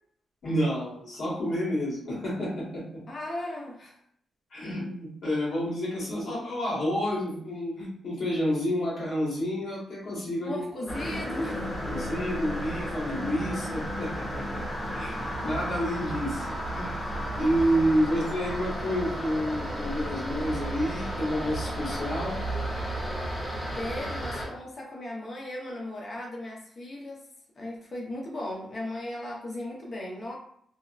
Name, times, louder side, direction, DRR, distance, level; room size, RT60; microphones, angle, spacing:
voice 1, 0.4-3.0 4.5-10.6 11.5-11.6 11.9-14.6 14.9-15.2 15.4-16.5 16.7-17.0 17.4-22.4, equal, 65° left, -6 dB, 1.1 m, -29 dB
voice 2, 3.1-4.0 10.4-11.7 15.3-15.5 17.8-18.3 23.5-27.3 27.6-30.4, left 1 dB, 45° left, -1 dB, 0.7 m, -37 dB
sound 1, 10.9-24.5, equal, 20° left, 1.2 m, -33 dB
2.8 x 2.0 x 2.3 m, 0.66 s
cardioid pair, 115°, 0 cm